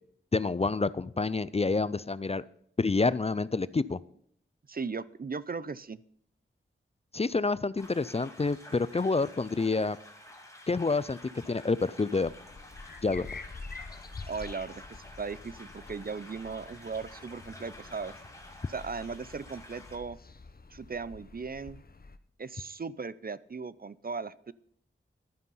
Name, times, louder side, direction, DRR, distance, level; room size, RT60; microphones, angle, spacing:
voice 1, 0.3-2.4 2.8-4.0 7.1-10.0 10.7-11.2 11.5-12.3 13.0-13.3, left 3 dB, 30° left, 18 dB, 0.4 m, -28 dB
voice 2, 4.7-6.0 14.3-14.8 15.2-18.1 18.7-20.2 20.7-21.8 22.4-24.5, right 5 dB, 45° right, 18 dB, 0.5 m, -37 dB
sound 1, 7.8-20.0, left 1 dB, 15° left, 2.5 m, -51 dB
sound 2, 12.2-22.2, left 4 dB, 45° left, 0.9 m, -47 dB
12.0 x 9.6 x 5.5 m, 0.67 s
wide cardioid pair, 60°, 21 cm